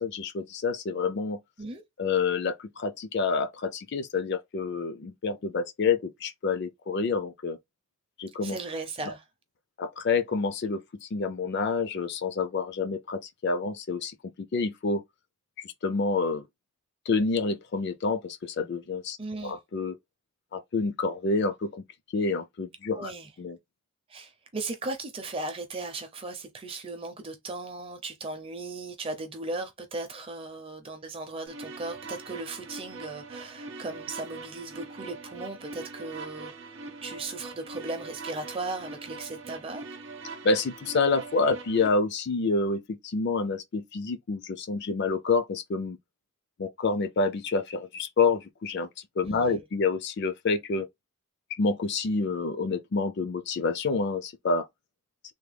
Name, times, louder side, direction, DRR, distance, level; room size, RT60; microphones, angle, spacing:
voice 1, 0.0-1.4 2.0-7.6 8.2-8.6 9.1-9.2 9.8-15.0 15.6-16.4 17.1-19.2 19.4-20.0 20.5-21.8 22.1-23.1 23.4-23.6 40.4-46.0 46.6-48.9 49.2-50.9 51.6-54.7, left 4 dB, 50° left, 0.4 m, -28 dB
voice 2, 8.4-9.2 19.2-19.6 22.9-23.3 24.1-36.5 37.0-39.8 49.2-49.6, right 3 dB, 25° right, 0.5 m, -37 dB
sound 1, 31.5-41.9, right 3 dB, 55° right, 0.7 m, -42 dB
3.4 x 2.2 x 3.3 m
head